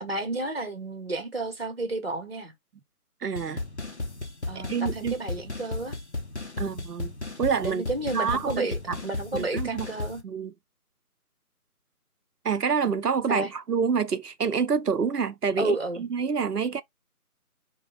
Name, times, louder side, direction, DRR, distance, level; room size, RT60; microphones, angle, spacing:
voice 1, 0.0-2.5 4.5-6.0 6.6-6.7 7.6-10.2 13.3-13.5 15.6-16.1, right 2 dB, 40° right, 0.9 m, -31 dB
voice 2, 3.2-3.7 4.5-5.1 6.6-7.1 7.4-7.9 8.1-9.0 9.3-9.9 10.2-10.5 12.4-16.8, right 6 dB, 90° right, 0.7 m, -27 dB
sound 1, 3.4-10.2, left 2 dB, 50° left, 0.7 m, -35 dB
5.0 x 2.2 x 2.3 m
figure-of-eight pair, 165°, 45 cm